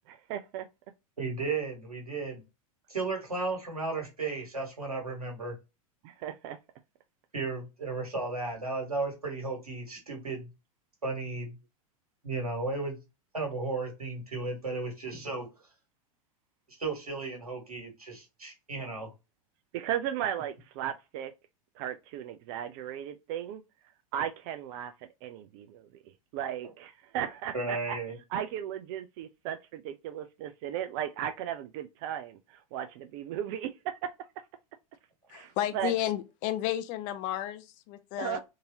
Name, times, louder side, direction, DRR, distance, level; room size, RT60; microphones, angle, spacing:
voice 1, 0.1-0.7 6.0-6.6 19.7-21.3 21.8-23.6 24.1-24.9 25.2-25.9 26.3-28.0 28.3-34.1 35.3-35.9 38.2-38.4, right 10 dB, 45° right, 0.4 m, -36 dB
voice 2, 1.2-2.4 2.9-5.5 7.3-10.5 11.0-11.6 12.2-13.0 13.3-15.5 16.8-19.1 27.5-28.2, right 3 dB, 90° right, 1.6 m, -34 dB
voice 3, 35.3-38.4, left 12 dB, 45° left, 0.5 m, -32 dB
3.8 x 2.6 x 2.8 m
figure-of-eight pair, 90°, 19 cm